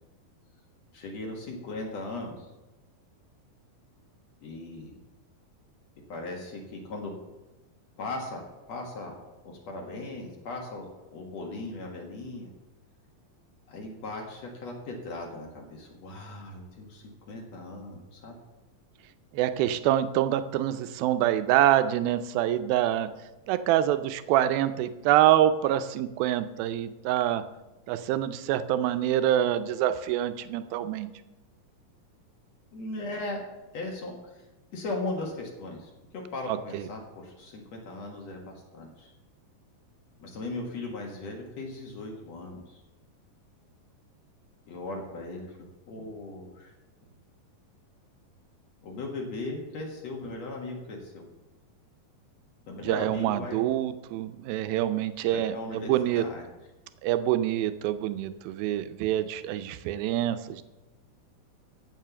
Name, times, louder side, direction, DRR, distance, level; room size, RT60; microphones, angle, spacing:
voice 1, 0.9-2.5 4.4-4.9 6.1-7.1 8.0-8.4 8.7-9.2 9.4-12.5 13.7-18.4 32.7-33.4 33.7-34.4 34.7-39.1 40.2-42.8 44.7-45.6 45.9-46.7 48.8-51.2 52.7-53.7 55.3-56.4, left 2 dB, 55° left, 0 dB, 2.4 m, -38 dB
voice 2, 19.3-23.1 23.5-27.4 27.9-31.1 36.5-36.9 52.8-56.2 57.0-60.6, right 12 dB, 85° right, 10 dB, 2.5 m, -26 dB
15.0 x 5.6 x 6.8 m, 1.1 s
omnidirectional pair, 4.2 m